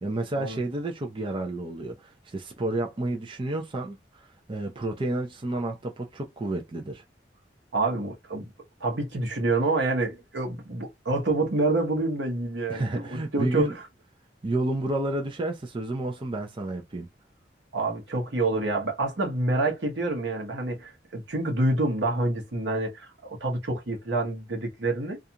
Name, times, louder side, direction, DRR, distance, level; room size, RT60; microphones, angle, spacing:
voice 1, 0.0-4.0 4.5-7.0 12.7-13.8 14.4-17.1, right 2 dB, 30° right, 0.4 m, -30 dB
voice 2, 7.7-8.5 8.8-13.6 17.7-25.2, right 2 dB, 75° right, 0.9 m, -27 dB
2.4 x 2.3 x 2.7 m
head